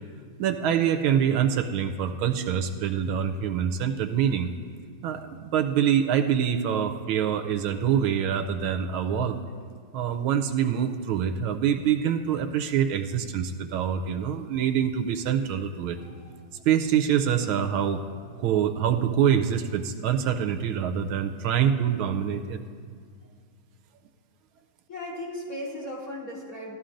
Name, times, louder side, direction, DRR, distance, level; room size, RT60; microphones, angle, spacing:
voice 1, 0.4-4.5 5.0-9.4 9.9-16.0 16.6-18.0 18.4-22.6, right 8 dB, 80° right, 6 dB, 1.4 m, -25 dB
voice 2, 16.0-16.3 24.9-26.7, left 1 dB, 40° left, -6 dB, 3.9 m, -37 dB
18.5 x 13.0 x 2.5 m, 2.1 s
omnidirectional pair, 2.3 m